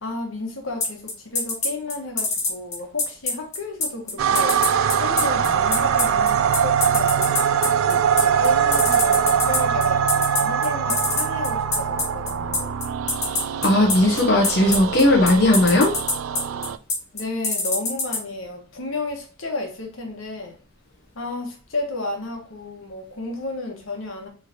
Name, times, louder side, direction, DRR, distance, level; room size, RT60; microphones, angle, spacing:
voice 1, 0.0-4.6 5.0-7.3 7.8-12.8 17.1-20.6 21.1-24.3, left 2 dB, 80° left, 1.2 m, -32 dB
sound 1, 0.8-18.2, left 3 dB, 35° left, 1.5 m, -23 dB
sound 2, 4.2-16.8, right 8 dB, 80° right, 0.3 m, -22 dB
voice 2, 13.6-15.9, left 1 dB, 50° left, 0.9 m, -17 dB
4.5 x 3.3 x 2.8 m
head